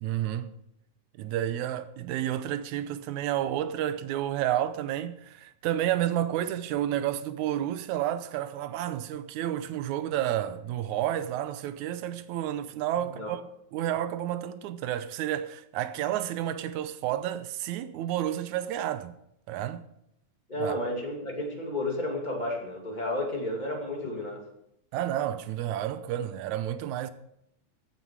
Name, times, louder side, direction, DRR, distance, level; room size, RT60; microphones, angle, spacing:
voice 1, 0.0-0.5 1.2-13.4 13.7-19.2 19.5-19.9 20.6-20.8 24.9-27.1, right 12 dB, 80° right, 1.8 m, -30 dB
voice 2, 13.0-13.3 20.5-24.4, left 1 dB, 15° left, 2.1 m, -32 dB
15.5 x 9.8 x 4.7 m
omnidirectional pair, 4.0 m